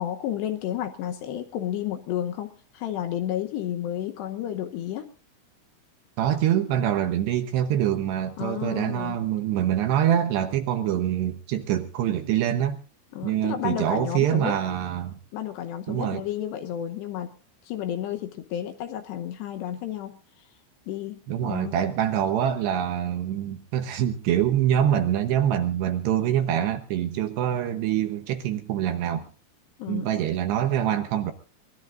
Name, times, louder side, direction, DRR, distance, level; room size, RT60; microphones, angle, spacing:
voice 1, 0.0-5.1 8.4-9.2 13.1-14.6 15.3-17.3 17.6-20.5 20.9-21.8 29.8-30.1, left 11 dB, 75° left, 8 dB, 2.7 m, -32 dB
voice 2, 6.2-12.8 13.2-15.2 15.9-16.2 21.3-29.3 29.9-31.3, right 10 dB, 75° right, 7 dB, 2.7 m, -25 dB
23.5 x 20.0 x 2.5 m, 0.35 s
omnidirectional pair, 5.7 m